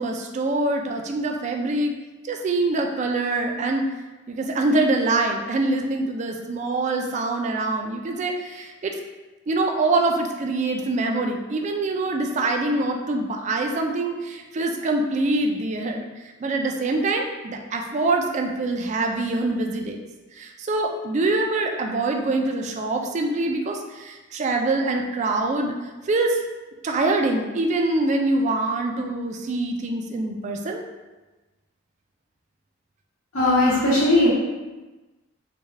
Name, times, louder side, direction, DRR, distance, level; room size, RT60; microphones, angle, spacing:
voice 1, 0.0-1.9 2.2-3.8 4.3-9.0 9.5-16.0 16.4-20.0 20.4-25.7 26.1-26.4 26.8-30.8, right 2 dB, 35° right, 3 dB, 0.3 m, -24 dB
voice 2, 33.3-34.3, left 1 dB, 80° left, -9 dB, 0.8 m, -18 dB
3.3 x 2.3 x 3.2 m, 1.2 s
head